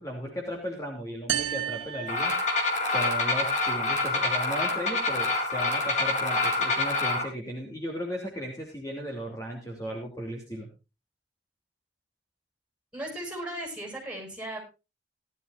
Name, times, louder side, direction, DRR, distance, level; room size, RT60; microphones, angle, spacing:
voice 1, 0.0-2.3 2.8-10.7, equal, 20° left, 0 dB, 2.9 m, -36 dB
sound 1, 1.3-3.0, right 10 dB, 85° right, 1.5 m, -33 dB
sound 2, 2.1-7.2, left 3 dB, 40° left, 4.1 m, -26 dB
voice 2, 12.9-14.6, right 1 dB, 5° right, 1 dB, 7.3 m, -36 dB
18.5 x 12.5 x 2.6 m, 0.30 s
head